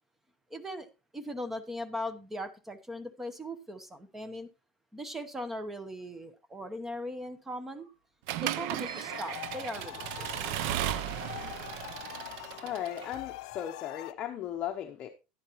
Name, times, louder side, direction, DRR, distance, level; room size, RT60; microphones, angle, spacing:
voice 1, 0.5-0.9 1.1-4.5 4.9-7.9 8.4-10.5, equal, 10° right, 0.9 m, -39 dB
sound 1, 7.7-7.9 8.6-9.8 10.4-10.8 11.4-11.5 11.8-12.1 13.0-13.5, right 3 dB, 80° right, 6.7 m, -50 dB
Accelerating revving vroom / Mechanisms, 8.3-13.2, right 12 dB, 60° right, 0.6 m, -35 dB
sound 2, 9.1-14.1, left 18 dB, 90° left, 0.5 m, -44 dB
voice 2, 12.6-15.1, left 10 dB, 35° left, 0.8 m, -36 dB
11.0 x 10.5 x 3.0 m
cardioid pair, 170°, 3 cm